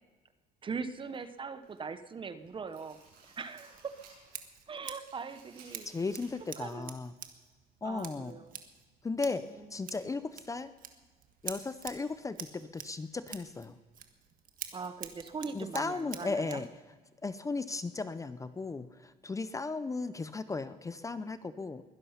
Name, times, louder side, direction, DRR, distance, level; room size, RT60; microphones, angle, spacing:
voice 1, 0.6-3.0 3.4-4.0 4.7-5.9 6.6-6.9 7.8-8.5 9.3-9.7 14.7-16.6, right 5 dB, 30° right, 12 dB, 0.8 m, -41 dB
sound 1, 0.9-1.9 2.3-4.4 4.7-6.8 7.1-7.2 8.0-8.1, right 4 dB, 75° right, 6.4 m, -59 dB
Scissors, 3.7-16.7, right 8 dB, 55° right, 1.5 m, -48 dB
voice 2, 5.8-7.1 7.8-8.3 9.0-9.5 9.7-10.7 11.4-13.8 15.5-16.7 17.2-21.8, left 3 dB, 20° left, 13 dB, 0.6 m, -36 dB
21.5 x 11.0 x 5.7 m, 1.4 s
cardioid pair, 110°, 17 cm